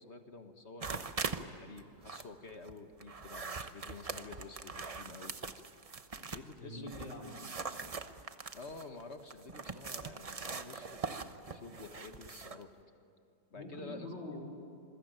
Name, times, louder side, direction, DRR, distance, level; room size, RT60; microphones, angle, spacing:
voice 1, 0.0-5.3 6.1-7.0 8.5-12.7 13.5-14.1, left 3 dB, 35° left, 6 dB, 1.7 m, -50 dB
sound 1, 0.8-1.4 1.8-6.5 6.9-12.6, right 4 dB, 55° right, 0.4 m, -42 dB
voice 2, 6.6-7.4 13.5-14.4, left 2 dB, 80° left, -2 dB, 5.7 m, -44 dB
27.5 x 21.5 x 9.1 m, 2.5 s
omnidirectional pair, 2.1 m